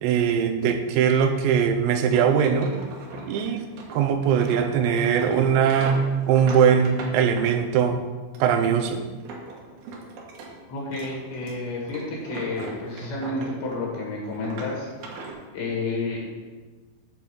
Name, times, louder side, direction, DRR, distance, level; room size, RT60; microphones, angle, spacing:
voice 1, 0.0-2.7 3.3-3.7 3.9-8.0 8.4-9.1, right 7 dB, 85° right, 4 dB, 3.5 m, -21 dB
sound 1, 1.9-7.9 8.3-10.5 10.8-14.0 14.3-15.3, right 3 dB, 65° right, 2.6 m, -39 dB
voice 2, 10.7-14.9 15.5-16.3, left 2 dB, 60° left, -3 dB, 4.0 m, -30 dB
9.8 x 4.5 x 7.0 m, 1.3 s
omnidirectional pair, 5.9 m